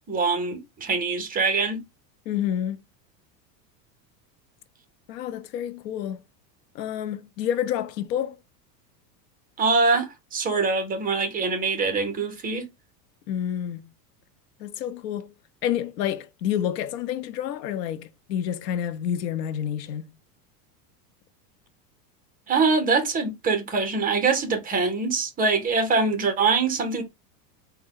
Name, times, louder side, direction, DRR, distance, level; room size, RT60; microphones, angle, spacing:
voice 1, 0.1-1.8 9.6-12.7 22.5-27.0, right 4 dB, 20° right, 0.7 m, -24 dB
voice 2, 2.3-2.8 5.1-6.2 6.7-8.4 13.3-13.8 14.6-15.3 15.6-20.1, left 10 dB, 85° left, 0.7 m, -29 dB
4.3 x 2.2 x 3.6 m
supercardioid pair, 140°, 48 cm